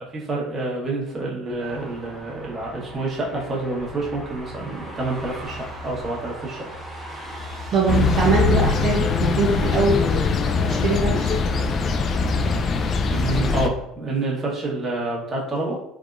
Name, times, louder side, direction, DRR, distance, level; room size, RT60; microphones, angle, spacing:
voice 1, 0.1-6.6 13.1-15.8, right 2 dB, 30° right, -4 dB, 1.2 m, -28 dB
sound 1, 1.6-9.1, equal, 10° right, 1.1 m, -38 dB
voice 2, 7.7-10.0 10.6-11.4, right 4 dB, 55° right, -2 dB, 0.5 m, -22 dB
sound 2, 7.9-13.7, left 4 dB, 40° left, 0.3 m, -22 dB
3.4 x 2.1 x 2.5 m, 0.77 s
supercardioid pair, 85°, 0 cm